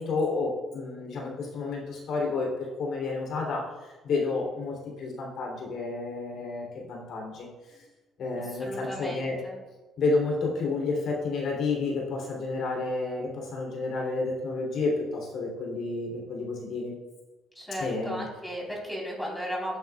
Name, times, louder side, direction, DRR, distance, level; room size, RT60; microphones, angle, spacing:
voice 1, 0.0-7.5 7.8-7.9 8.2-9.4 10.0-16.9 17.8-18.2, left 3 dB, 65° left, -1 dB, 3.2 m, -30 dB
voice 2, 8.5-9.6 17.5-19.8, equal, ahead, -3 dB, 4.0 m, -35 dB
16.5 x 9.2 x 2.4 m, 1.2 s
cardioid pair, 130°, 0 cm